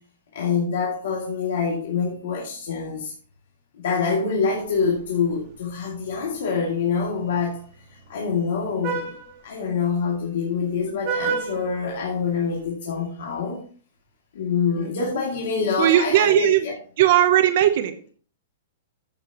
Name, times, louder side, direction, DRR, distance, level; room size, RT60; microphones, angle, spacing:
voice 1, 0.3-3.1 3.8-7.6 8.1-9.2 9.4-13.7 14.3-16.8, left 5 dB, 60° left, 2.6 m, -25 dB
voice 2, 4.0-4.4 14.8-15.1 15.8-16.6 17.0-18.1, right 12 dB, 40° right, 0.8 m, -19 dB
Vehicle horn car horn honking, 4.5-12.7, right 5 dB, 25° right, 2.1 m, -35 dB
15.0 x 6.6 x 3.0 m
hypercardioid pair, 180°, 0 cm